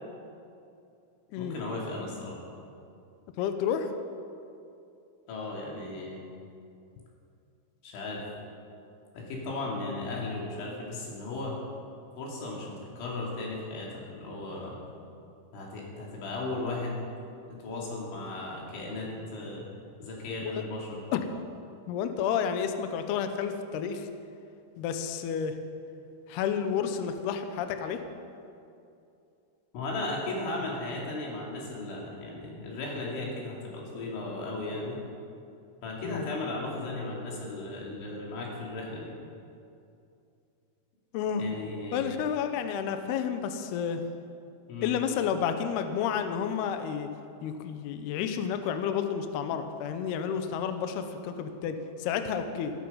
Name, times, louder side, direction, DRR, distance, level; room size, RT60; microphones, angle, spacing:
voice 1, 1.4-2.4 5.3-6.2 7.8-8.2 9.1-11.6 12.2-14.8 15.5-17.0 17.6-19.7 20.0-21.0 29.7-35.0 35.8-39.1 41.4-42.0 44.7-44.9, left 2 dB, 70° left, -3 dB, 5.0 m, -36 dB
voice 2, 3.4-3.9 20.4-20.6 21.1-21.2 21.9-24.1 24.8-25.6 26.3-28.0 36.0-36.3 41.1-41.4 41.9-44.0 44.8-47.1 47.4-52.7, left 7 dB, 85° left, 8 dB, 2.3 m, -30 dB
15.5 x 12.5 x 5.5 m, 2.6 s
omnidirectional pair, 5.7 m